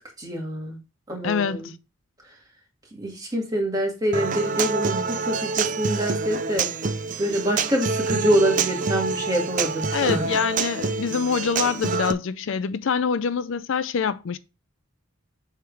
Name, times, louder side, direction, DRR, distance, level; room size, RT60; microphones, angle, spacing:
voice 1, 0.2-0.8 1.1-1.7 2.9-6.7 7.2-10.3, right 1 dB, 20° right, 2.1 m, -25 dB
voice 2, 1.2-1.7 9.9-14.4, left 6 dB, 65° left, 0.4 m, -25 dB
Human voice / Acoustic guitar, 4.1-12.1, right 4 dB, 40° right, 0.4 m, -26 dB
7.6 x 3.7 x 4.7 m
head